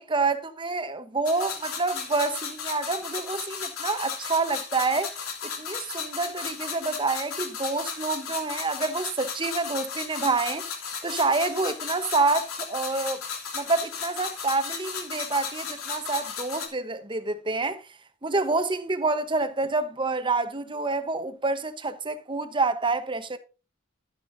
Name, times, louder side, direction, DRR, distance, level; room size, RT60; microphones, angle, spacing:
voice 1, 0.0-5.1 5.4-10.6 11.0-13.2 13.5-17.8 18.2-23.4, right 3 dB, 25° right, 1.0 m, -27 dB
sound 1, 1.3-16.7, left 6 dB, 80° left, 3.0 m, -35 dB
12.0 x 10.0 x 2.7 m
head